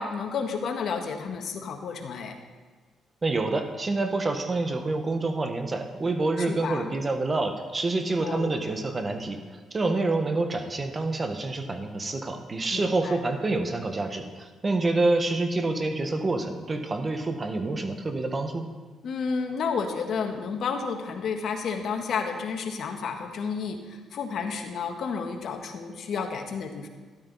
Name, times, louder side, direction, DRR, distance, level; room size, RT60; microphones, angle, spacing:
voice 1, 0.0-2.3 6.4-6.9 8.2-8.6 12.7-13.2 19.0-26.9, left 5 dB, 65° left, 4 dB, 1.5 m, -31 dB
voice 2, 3.2-9.4 9.7-18.7, right 2 dB, 30° right, 6 dB, 1.4 m, -27 dB
13.0 x 12.0 x 4.1 m, 1.4 s
cardioid pair, 90°, 0 cm